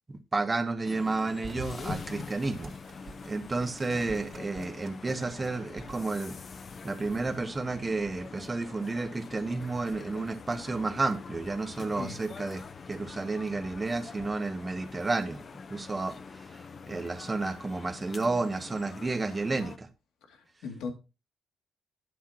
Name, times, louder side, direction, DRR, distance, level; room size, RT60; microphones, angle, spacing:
voice 1, 0.1-2.7 3.2-6.4 6.8-15.4 15.7-19.9, right 3 dB, 25° right, 8 dB, 1.2 m, -31 dB
sound 1, 0.8-19.8, left 5 dB, 45° left, 0.7 m, -44 dB
sound 2, 1.4-5.1 5.4-6.3, right 5 dB, 50° right, 2.4 m, -47 dB
voice 2, 11.8-12.2 20.3-20.9, left 5 dB, 85° left, 4 dB, 2.6 m, -39 dB
12.0 x 8.5 x 3.0 m, 0.30 s
cardioid pair, 90°, 0 cm